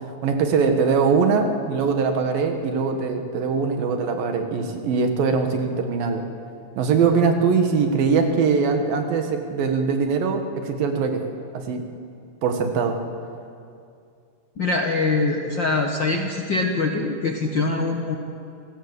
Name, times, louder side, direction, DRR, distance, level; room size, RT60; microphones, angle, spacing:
voice 1, 0.2-6.2 6.8-11.2 11.5-11.8 12.4-13.0, right 5 dB, 85° right, 5 dB, 3.5 m, -22 dB
voice 2, 14.6-18.2, left 3 dB, 55° left, 2 dB, 1.3 m, -23 dB
27.0 x 17.0 x 8.2 m, 2.4 s
omnidirectional pair, 4.0 m